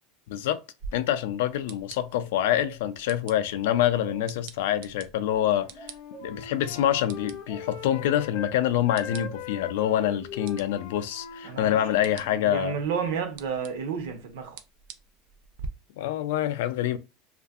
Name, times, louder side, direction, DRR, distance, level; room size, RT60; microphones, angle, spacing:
voice 1, 0.3-0.6 0.9-5.9 6.2-12.8 16.0-17.0, left 11 dB, 70° left, 0.3 m, -26 dB
sound 1, 0.8-15.7, right 6 dB, 55° right, 0.4 m, -48 dB
sound 2, 2.6-3.0 3.3-3.4 3.7-4.4 5.7-6.5 7.5-8.2 8.9-9.5, right 6 dB, ahead, 0.5 m, -48 dB
Wind instrument woodwind instrument, 5.5-8.6 8.9-12.6, left 8 dB, 50° left, 0.7 m, -41 dB
voice 2, 11.4-11.8 12.4-14.6, right 6 dB, 70° right, 0.8 m, -31 dB
2.6 x 2.4 x 2.3 m
supercardioid pair, 175°, 0 cm